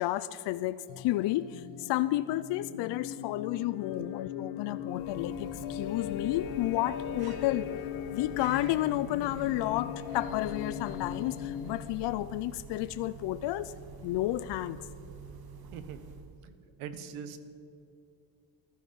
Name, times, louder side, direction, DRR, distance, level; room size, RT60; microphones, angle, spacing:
voice 1, 0.0-7.7 8.1-13.7 14.0-14.8, left 15 dB, 60° left, 13 dB, 0.5 m, -31 dB
sound 1, 0.9-12.3, left 10 dB, 75° left, 0.9 m, -39 dB
sound 2, 4.7-16.5, right 6 dB, 45° right, 1.1 m, -47 dB
voice 2, 16.4-17.4, right 7 dB, 85° right, 11 dB, 1.3 m, -42 dB
15.0 x 12.5 x 5.4 m, 2.7 s
cardioid pair, 135°, 49 cm